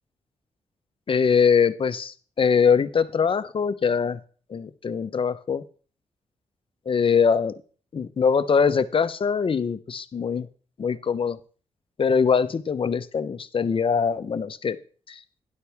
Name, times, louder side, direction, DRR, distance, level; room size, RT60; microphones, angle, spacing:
voice 1, 1.1-4.2 4.5-5.6 6.9-7.5 7.9-10.5 10.8-11.4 12.0-14.8 15.1-15.2, left 6 dB, 50° left, 12 dB, 0.9 m, -22 dB
12.5 x 10.5 x 3.5 m, 0.41 s
cardioid pair, 65°, 12 cm